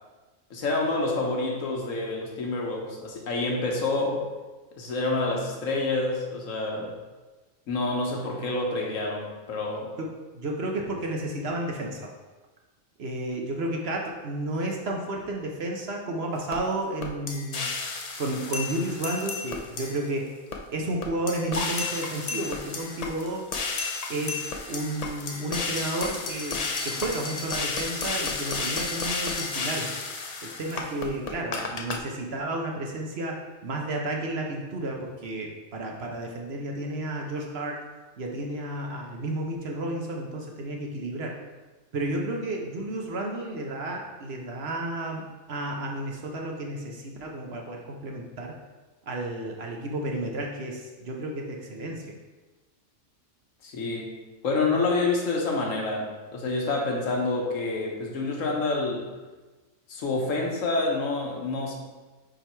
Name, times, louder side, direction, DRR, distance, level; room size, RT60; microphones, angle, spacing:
voice 1, 0.5-4.2 4.8-6.9 7.7-9.9 53.6-54.1 54.4-59.1 59.9-61.8, left 3 dB, 75° left, 0 dB, 1.4 m, -28 dB
voice 2, 10.0-12.1 13.0-17.7 18.2-20.3 20.7-23.5 24.1-29.9 30.4-33.4 33.6-37.8 38.2-41.4 41.9-48.6 49.1-52.2, right 1 dB, 55° right, 1 dB, 1.0 m, -32 dB
sound 1, 16.5-16.6 17.0-20.1 20.5-20.6 21.0-32.0, left 4 dB, 50° left, 0.4 m, -32 dB
5.2 x 4.6 x 4.5 m, 1.2 s
omnidirectional pair, 1.4 m